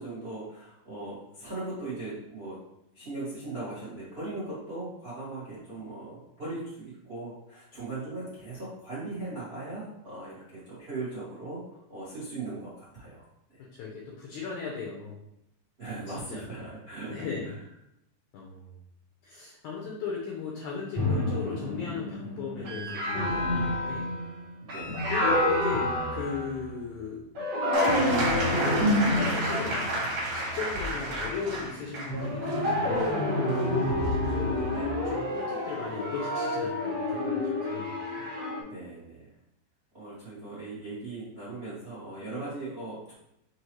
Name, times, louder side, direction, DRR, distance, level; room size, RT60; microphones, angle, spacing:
voice 1, 0.0-2.6 2.9-11.6 11.9-13.2 13.5-13.6 15.8-17.5 24.6-25.0 34.7-34.9 38.6-39.2 39.9-43.1, right 2 dB, 85° right, -9 dB, 0.5 m, -39 dB
voice 2, 13.8-15.2 16.3-16.5 17.1-17.5 18.3-18.7 19.2-24.1 25.1-27.2 27.9-28.1 28.5-30.0 30.3-33.1 34.2-34.7 35.0-38.3, left 5 dB, 85° left, -2 dB, 1.7 m, -37 dB
sound 1, 20.9-26.9 27.4-31.3 32.1-38.6, left 1 dB, 40° right, 1.6 m, -28 dB
sound 2, 27.7-35.3 36.5-36.6, right 1 dB, 65° right, 2.5 m, -32 dB
6.0 x 2.8 x 3.0 m, 0.83 s
omnidirectional pair, 4.3 m